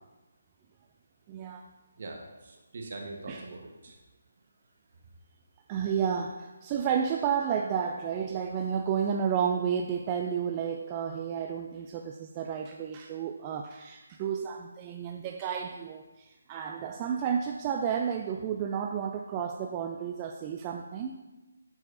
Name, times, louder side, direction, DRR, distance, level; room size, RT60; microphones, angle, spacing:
voice 1, 1.3-1.6 3.3-3.5 5.7-21.2, right 7 dB, 25° right, 3 dB, 0.3 m, -31 dB
voice 2, 2.0-4.0, right 2 dB, 50° right, 2 dB, 1.2 m, -42 dB
11.0 x 4.7 x 2.6 m, 1.1 s
figure-of-eight pair, 155°, 0 cm